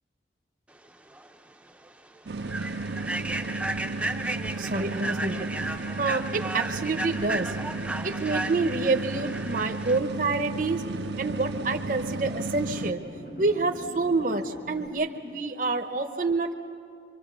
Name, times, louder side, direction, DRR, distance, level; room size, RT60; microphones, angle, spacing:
Human voice / Train, 1.1-1.3 1.7-1.9 2.4-10.0, right 2 dB, 5° right, 0.6 m, -34 dB
sound 1, 2.3-12.9, right 3 dB, 75° right, 0.6 m, -34 dB
voice 1, 4.6-5.5 6.0-7.6 8.0-10.8 11.2-13.0 13.4-16.5, right 3 dB, 45° right, 4 dB, 0.9 m, -27 dB
sound 2, 10.1-14.9, equal, 85° left, 5.4 m, -43 dB
25.0 x 25.0 x 6.9 m, 2.4 s
head